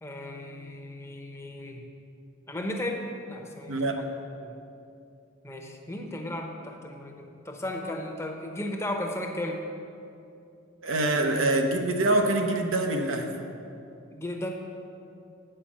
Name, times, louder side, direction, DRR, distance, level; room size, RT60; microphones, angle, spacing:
voice 1, 0.0-1.8 2.5-4.0 4.4-4.6 5.4-9.6 14.1-14.5, left 1 dB, 15° left, 2 dB, 0.8 m, -35 dB
voice 2, 3.7-4.0 10.8-13.3, right 2 dB, 85° right, 3 dB, 0.8 m, -25 dB
8.9 x 5.0 x 7.3 m, 2.6 s
head